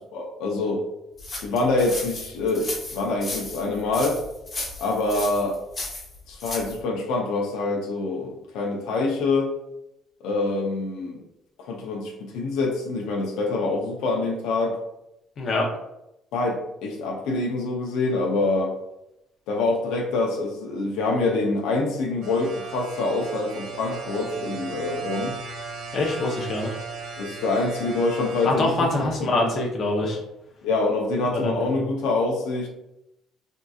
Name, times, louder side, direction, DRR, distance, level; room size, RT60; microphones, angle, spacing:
voice 1, 0.1-0.8 1.4-4.2 4.8-5.6 6.3-9.5 10.2-11.2 11.6-14.8 16.3-18.7 19.5-25.4 27.2-28.7 29.0-29.5 30.6-32.7, left 3 dB, 85° left, 0 dB, 0.6 m, -25 dB
sound 1, 1.2-6.8, left 2 dB, 25° left, 1.1 m, -35 dB
voice 2, 15.4-15.7 25.9-26.7 28.4-30.2 31.3-31.5, left 2 dB, 40° left, -1 dB, 0.7 m, -24 dB
sound 2, 22.2-28.5, right 4 dB, 75° right, 0.7 m, -36 dB
3.5 x 2.7 x 2.3 m, 0.87 s
cardioid pair, 150°, 0 cm